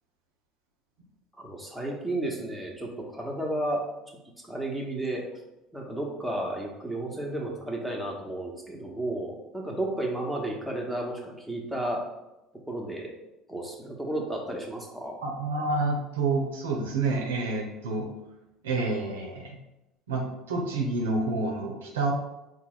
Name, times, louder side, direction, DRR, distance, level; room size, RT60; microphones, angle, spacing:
voice 1, 1.4-3.8 4.4-5.2 5.7-12.0 12.7-13.1 13.5-15.2, right 1 dB, ahead, -1 dB, 1.0 m, -32 dB
voice 2, 15.2-18.1 18.6-19.6 20.1-22.1, right 3 dB, 75° right, 0 dB, 0.6 m, -28 dB
4.5 x 2.1 x 4.0 m, 0.92 s
figure-of-eight pair, 65°, 0 cm